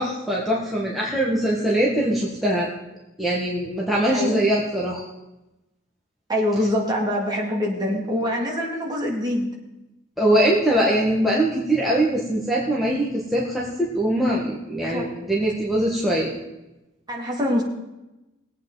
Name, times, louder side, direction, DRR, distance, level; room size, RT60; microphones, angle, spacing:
voice 1, 0.0-2.7 3.2-5.0 10.2-16.3, right 1 dB, ahead, -5 dB, 1.7 m, -22 dB
voice 2, 6.3-9.5 14.8-15.1 17.1-17.6, left 1 dB, 20° right, -2 dB, 2.7 m, -24 dB
20.5 x 8.4 x 4.1 m, 0.99 s
head